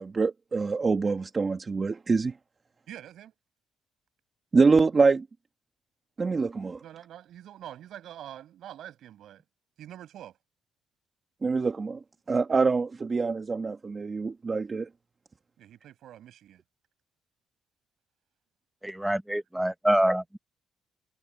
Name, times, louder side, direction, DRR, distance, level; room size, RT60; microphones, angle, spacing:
voice 1, 0.0-2.3 4.5-5.3 6.2-6.8 11.4-12.0 12.3-14.9, right 4 dB, 35° right, 1.6 m, -25 dB
voice 2, 2.9-3.3 6.8-9.4 9.8-10.4 15.6-16.6, right 11 dB, 75° right, 8.0 m, -45 dB
voice 3, 18.8-20.4, right 1 dB, 5° right, 1.1 m, -26 dB
cardioid pair, 90°, 0 cm